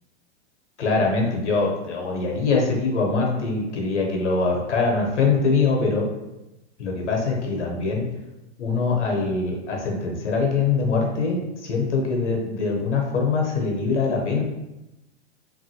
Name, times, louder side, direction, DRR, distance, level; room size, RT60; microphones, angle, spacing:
voice 1, 0.8-6.1 6.8-8.1 8.6-14.4, left 4 dB, 90° left, 0 dB, 0.9 m, -23 dB
3.0 x 2.6 x 2.8 m, 0.96 s
hypercardioid pair, 125°, 34 cm